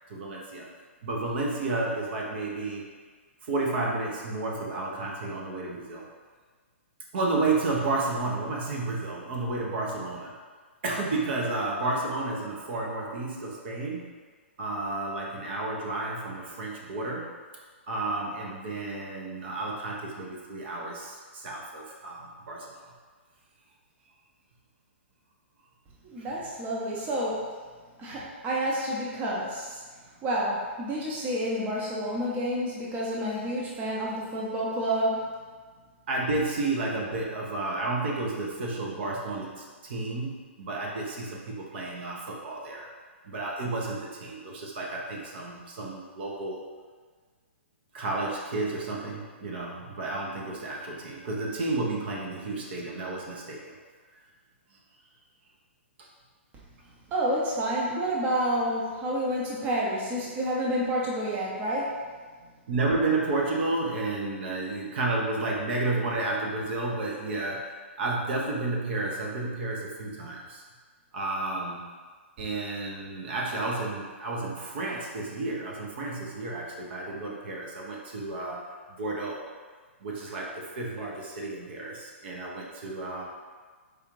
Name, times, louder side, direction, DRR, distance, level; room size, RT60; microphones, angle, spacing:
voice 1, 0.1-0.7 1.0-2.8 3.4-6.0 7.1-10.3 10.8-14.1 14.6-17.3 17.9-22.8 26.2-26.3 28.1-28.3 36.1-42.9 43.2-46.6 47.9-53.7 54.7-54.8 56.0-56.1 62.7-70.6 71.1-71.8 72.4-79.5 80.0-83.3, right 2 dB, 55° right, -2 dB, 0.8 m, -31 dB
voice 2, 26.0-27.5 28.0-29.8 30.2-35.3 57.1-62.0, equal, 25° right, -4 dB, 0.7 m, -29 dB
4.8 x 2.4 x 3.1 m, 1.5 s
hypercardioid pair, 125°, 7 cm